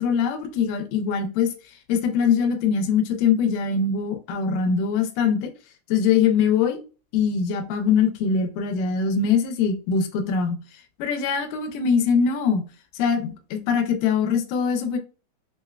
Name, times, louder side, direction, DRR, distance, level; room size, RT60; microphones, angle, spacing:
voice 1, 0.0-1.5 1.9-5.5 5.9-6.8 7.1-10.6 11.0-12.6 12.9-15.0, left 6 dB, 85° left, 4 dB, 2.2 m, -22 dB
6.0 x 2.1 x 2.3 m, 0.35 s
omnidirectional pair, 3.7 m